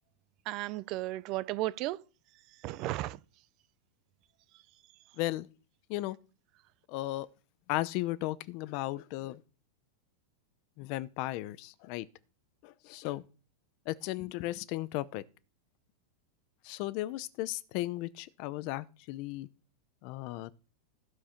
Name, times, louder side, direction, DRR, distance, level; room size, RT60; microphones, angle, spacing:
voice 1, 0.5-2.0 2.6-3.2, right 16 dB, 35° right, 0.4 m, -34 dB
voice 2, 5.1-5.5 5.9-6.2 6.9-7.3 7.7-9.4 10.8-12.1 12.6-13.2 13.9-15.2 16.6-19.5 20.0-20.5, left 17 dB, 40° left, 0.6 m, -35 dB
14.5 x 4.8 x 5.7 m
supercardioid pair, 170°, 0 cm